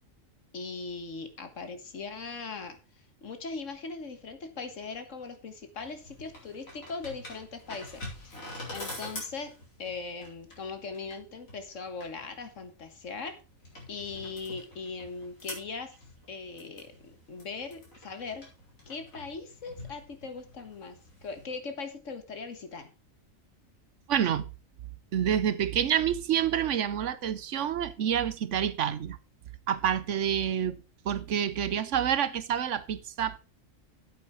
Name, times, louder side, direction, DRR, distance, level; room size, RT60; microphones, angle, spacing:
voice 1, 0.5-2.8 3.2-8.4 8.7-9.5 9.8-13.4 13.9-15.9 16.3-18.5 18.9-22.9, left 4 dB, 65° left, 1.8 m, -40 dB
sound 1, 5.8-21.5, left 1 dB, 80° left, 4.7 m, -46 dB
voice 2, 24.1-24.4 25.1-29.2 29.7-30.8 31.0-33.4, right 9 dB, 65° right, 1.0 m, -28 dB
9.1 x 8.2 x 4.6 m
omnidirectional pair, 1.4 m